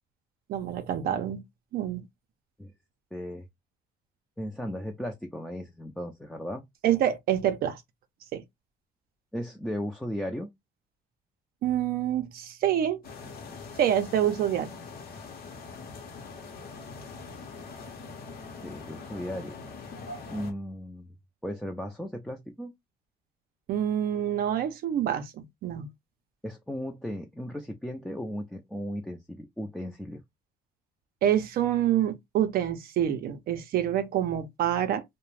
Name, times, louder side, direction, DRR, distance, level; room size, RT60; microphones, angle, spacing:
voice 1, 0.5-1.4 1.7-2.0 6.8-7.8 8.3-8.4 11.6-13.0 13.8-14.7 23.7-25.9 31.2-35.0, right 10 dB, 65° right, 0.5 m, -27 dB
voice 2, 3.1-3.4 4.4-6.6 9.3-10.5 18.6-19.6 20.3-21.1 21.4-22.7 26.4-30.2, equal, 5° left, 0.4 m, -36 dB
sound 1, 13.0-20.5, left 4 dB, 60° left, 0.8 m, -43 dB
2.3 x 2.1 x 3.1 m
cardioid pair, 110°, 17 cm